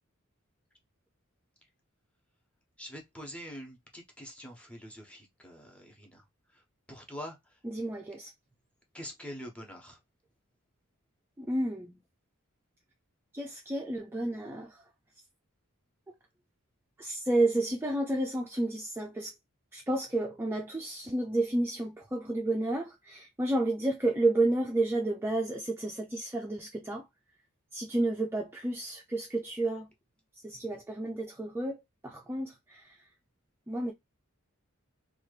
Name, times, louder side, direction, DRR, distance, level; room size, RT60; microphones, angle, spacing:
voice 1, 2.8-6.2 6.5-6.6 6.9-7.4 8.9-10.0, equal, 5° left, 0.9 m, -45 dB
voice 2, 7.6-8.3 11.4-12.0 13.3-14.8 17.0-19.3 19.7-27.1 27.7-29.9 30.4-33.1 33.7-33.9, right 2 dB, 10° right, 0.4 m, -31 dB
2.9 x 2.3 x 3.1 m
head